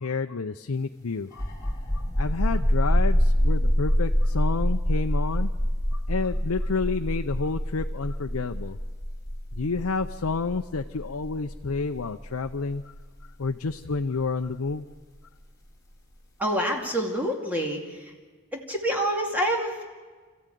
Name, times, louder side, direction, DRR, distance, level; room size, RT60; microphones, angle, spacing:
voice 1, 0.0-1.4 2.2-5.5 6.1-8.8 9.6-12.8 13.4-14.9, left 4 dB, 80° left, 5 dB, 0.7 m, -29 dB
sound 1, 1.3-14.7, equal, 15° left, 3.4 m, -25 dB
voice 2, 16.4-18.1 18.5-19.8, equal, 10° right, 0 dB, 2.4 m, -27 dB
27.0 x 14.5 x 9.2 m, 1.5 s
head